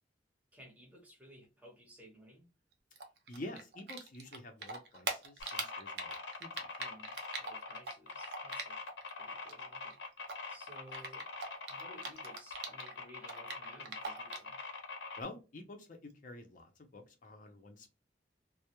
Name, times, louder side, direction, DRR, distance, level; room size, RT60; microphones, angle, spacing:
voice 1, 0.5-2.5 6.8-8.8 9.1-10.0 10.5-11.3 11.7-14.6, equal, 10° right, 0.6 m, -57 dB
Typing, 2.9-4.4 4.6-9.1 9.4-12.9 13.2-14.5, right 4 dB, 65° right, 0.6 m, -42 dB
voice 2, 3.3-6.1 6.4-6.7 15.2-17.9, left 2 dB, 50° left, 0.5 m, -48 dB
sound 1, 5.4-15.2, left 4 dB, 85° left, 0.7 m, -44 dB
2.1 x 2.0 x 2.9 m
head